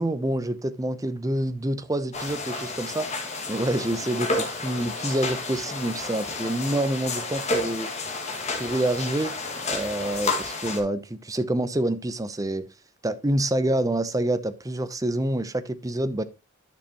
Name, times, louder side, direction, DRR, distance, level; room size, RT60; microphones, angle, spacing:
voice 1, 0.0-7.9 8.5-9.3 9.6-12.7 13.0-16.2, right 1 dB, 15° right, 0.6 m, -27 dB
sound 1, 2.1-10.8, left 3 dB, 30° left, 1.9 m, -31 dB
10.5 x 6.6 x 2.9 m
head